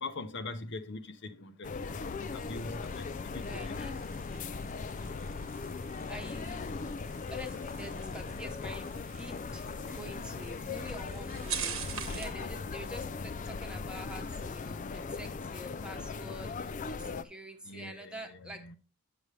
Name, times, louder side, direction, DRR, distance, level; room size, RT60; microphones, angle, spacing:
voice 1, 0.0-1.5 2.0-3.1 3.3-3.8 17.7-17.9, left 2 dB, 55° left, 0.7 m, -41 dB
sound 1, 1.6-17.2, left 4 dB, 35° left, 0.4 m, -39 dB
sound 2, 1.7-12.4, right 8 dB, 65° right, 1.2 m, -45 dB
voice 2, 3.3-4.0 5.8-6.7 7.3-18.8, equal, 5° right, 1.1 m, -47 dB
8.7 x 6.8 x 3.2 m
head